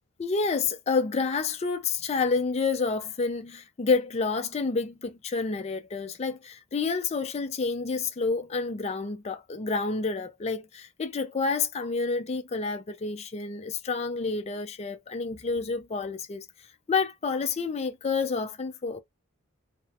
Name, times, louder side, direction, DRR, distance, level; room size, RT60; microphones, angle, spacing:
voice 1, 0.2-16.5 16.9-19.0, left 4 dB, 30° left, 0.4 m, -29 dB
2.4 x 2.0 x 2.7 m
head